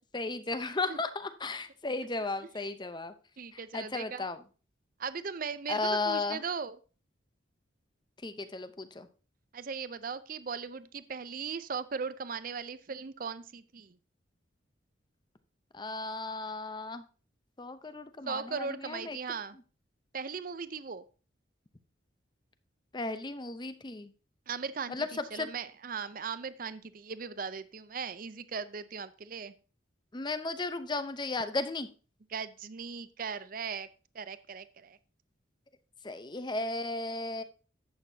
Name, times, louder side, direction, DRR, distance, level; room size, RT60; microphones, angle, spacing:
voice 1, 0.1-3.1 3.5-4.4 5.7-6.4 8.2-9.1 15.7-17.0 17.6-19.2 22.9-24.1 24.9-25.5 30.1-31.9 36.0-37.4, left 3 dB, 25° left, 11 dB, 0.7 m, -35 dB
voice 2, 3.4-4.2 5.0-6.8 9.5-14.0 18.3-19.6 20.1-21.0 24.5-29.5 32.3-33.9 34.1-35.0, right 5 dB, 45° right, 14 dB, 0.5 m, -38 dB
11.0 x 8.1 x 2.8 m, 0.36 s
head